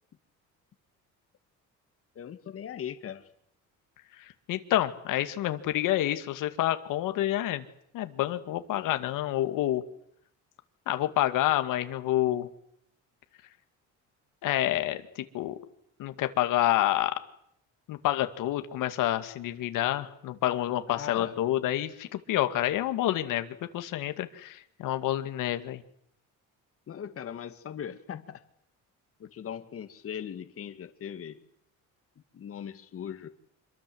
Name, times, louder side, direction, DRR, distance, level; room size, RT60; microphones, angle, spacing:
voice 1, 2.2-3.3 20.9-21.4 26.9-28.4 29.2-31.4 32.3-33.3, left 8 dB, 45° left, 8 dB, 2.0 m, -39 dB
voice 2, 4.5-7.6 7.9-9.8 10.9-12.5 14.4-15.5 16.0-17.2 17.9-25.8, left 13 dB, 75° left, 9 dB, 2.2 m, -28 dB
26.5 x 23.5 x 7.9 m, 0.71 s
cardioid pair, 125°, 32 cm